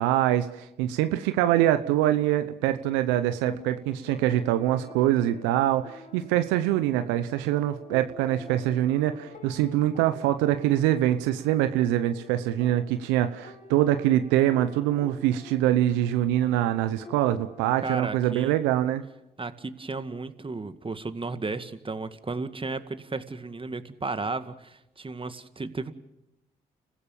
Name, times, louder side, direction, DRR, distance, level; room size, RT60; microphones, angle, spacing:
voice 1, 0.0-19.0, right 13 dB, 80° right, 10 dB, 0.9 m, -24 dB
sound 1, 3.3-17.7, left 4 dB, 45° left, 5.5 m, -48 dB
voice 2, 17.8-18.6 19.4-25.9, right 3 dB, 30° right, 10 dB, 2.0 m, -34 dB
29.5 x 15.5 x 7.2 m, 0.90 s
hypercardioid pair, 45°, 19 cm